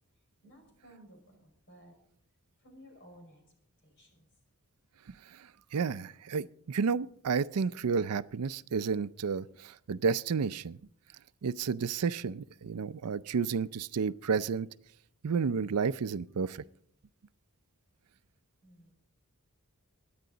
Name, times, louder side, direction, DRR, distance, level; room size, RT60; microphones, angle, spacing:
voice 1, 0.4-2.0 2.6-3.4 3.8-4.3 18.6-19.0, equal, 55° left, 5.4 m, -56 dB
voice 2, 5.3-10.8 11.4-14.7 15.2-16.6, right 5 dB, 85° right, 0.5 m, -31 dB
23.0 x 9.6 x 3.9 m
head